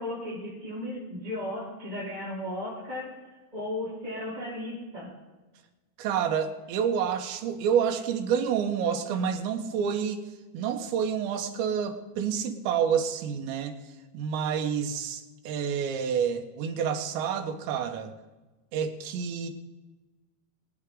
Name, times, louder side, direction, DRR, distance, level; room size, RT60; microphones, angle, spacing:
voice 1, 0.0-3.1 3.5-5.1, left 1 dB, 10° right, -10 dB, 5.7 m, -35 dB
voice 2, 6.0-10.2 10.5-13.8 14.1-18.1 18.7-19.5, right 7 dB, 80° right, 5 dB, 3.5 m, -28 dB
23.5 x 9.7 x 3.9 m, 1.2 s
omnidirectional pair, 5.1 m